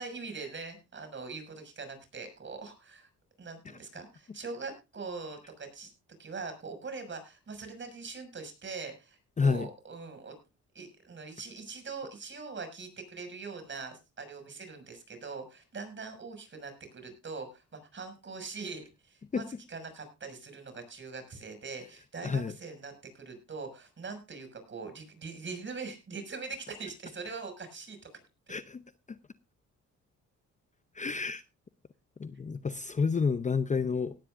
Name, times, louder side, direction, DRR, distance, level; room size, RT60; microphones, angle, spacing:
voice 1, 0.0-3.1 3.4-5.9 6.2-10.4 10.7-28.0, right 4 dB, 40° right, 6.3 m, -42 dB
voice 2, 9.4-9.7 19.3-19.4 22.2-22.5 28.5-28.8 30.9-31.4 32.2-34.2, left 5 dB, 25° left, 0.7 m, -29 dB
18.0 x 12.5 x 2.5 m
cardioid pair, 90°, 30 cm